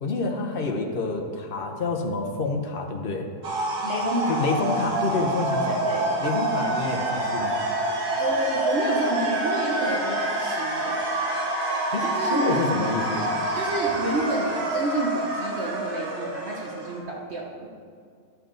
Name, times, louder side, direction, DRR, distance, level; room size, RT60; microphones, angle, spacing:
voice 1, 0.0-3.3 4.3-5.9 6.2-7.6 11.9-12.0 12.3-13.4, left 3 dB, 45° left, 2 dB, 0.8 m, -28 dB
sound 1, 3.4-17.0, right 2 dB, 65° right, 1.9 m, -27 dB
voice 2, 3.8-4.4 5.9-6.1 8.2-11.0 12.0-12.6 13.5-17.7, right 2 dB, 45° right, -3 dB, 1.0 m, -30 dB
11.5 x 6.9 x 3.8 m, 2.2 s
omnidirectional pair, 1.8 m